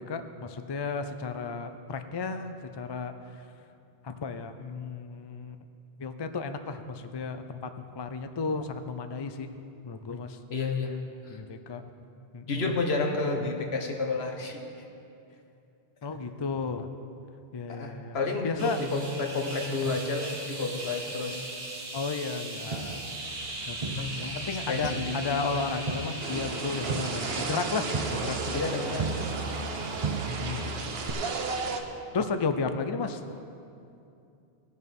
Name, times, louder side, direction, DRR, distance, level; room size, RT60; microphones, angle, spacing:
voice 1, 0.0-3.1 4.0-5.6 6.0-9.5 9.8-10.4 11.3-11.8 12.3-12.8 13.4-13.5 16.0-16.9 17.5-18.2 18.4-18.8 21.9-22.7 23.7-28.7 30.3-30.7 32.1-33.4, left 4 dB, 40° left, 8 dB, 0.3 m, -33 dB
voice 2, 10.5-11.0 12.5-14.6 17.7-21.4 22.7-23.0 23.8-24.2 24.7-25.5 28.5-29.1, left 3 dB, 70° left, 3 dB, 1.4 m, -31 dB
sound 1, 18.6-31.9, right 2 dB, 85° right, 1.9 m, -40 dB
Crowd, 22.7-24.5 24.8-29.8 30.0-30.7 31.1-31.2, right 4 dB, 40° right, 0.6 m, -35 dB
sound 2, 26.2-31.8, right 4 dB, 70° right, 1.0 m, -34 dB
17.5 x 6.4 x 5.3 m, 2.6 s
omnidirectional pair, 1.1 m